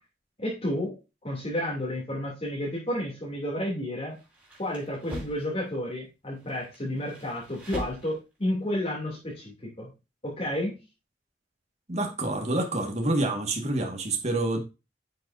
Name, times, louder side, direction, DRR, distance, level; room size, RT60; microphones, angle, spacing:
voice 1, 0.4-0.9 1.2-4.2 4.6-9.9 10.2-10.7, left 1 dB, 30° left, -4 dB, 2.9 m, -31 dB
sound 1, 4.1-5.5 6.3-8.4, equal, 10° right, 4.8 m, -41 dB
voice 2, 11.9-14.6, right 2 dB, 35° right, 2 dB, 1.8 m, -27 dB
10.5 x 6.6 x 2.7 m, 0.27 s
head